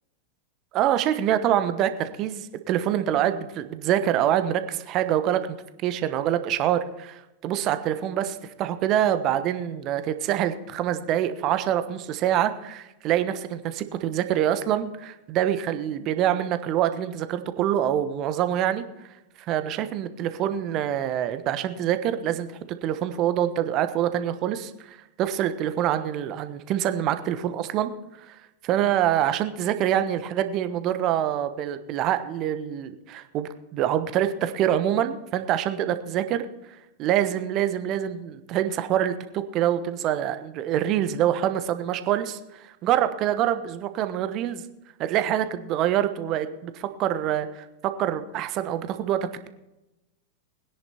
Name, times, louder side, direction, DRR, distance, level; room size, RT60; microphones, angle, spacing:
voice 1, 0.7-5.4 5.8-18.8 19.5-22.5 22.8-27.9 28.3-36.5 37.0-44.6 45.0-49.5, right 11 dB, 35° right, 11 dB, 1.2 m, -25 dB
20.5 x 10.5 x 4.4 m, 0.97 s
figure-of-eight pair, 90°, 0 cm